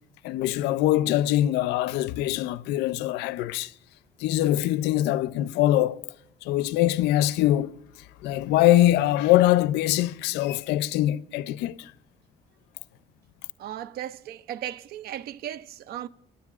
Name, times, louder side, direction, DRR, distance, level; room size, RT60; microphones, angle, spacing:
voice 1, 0.2-3.7 4.2-6.0 6.4-7.7 8.2-11.9, left 14 dB, 85° left, 0.4 m, -23 dB
voice 2, 13.6-16.1, right 11 dB, 65° right, 0.4 m, -36 dB
22.0 x 10.0 x 2.4 m
cardioid pair, 110°, 17 cm